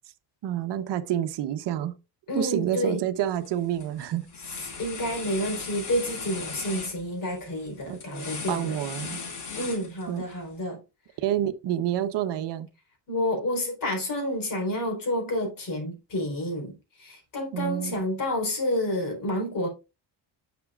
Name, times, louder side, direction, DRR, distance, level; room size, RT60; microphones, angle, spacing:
voice 1, 0.4-1.9 2.3-4.3 7.9-9.2 10.1-10.3 11.2-12.7 17.5-17.9, right 11 dB, 70° right, 1.0 m, -28 dB
voice 2, 2.3-3.0 4.8-8.8 9.6-10.8 13.1-19.7, left 1 dB, 50° left, 4.1 m, -29 dB
sound 1, 3.2-3.5 3.8-10.3, left 5 dB, 70° left, 3.9 m, -38 dB
10.5 x 6.1 x 2.4 m
cardioid pair, 135°, 43 cm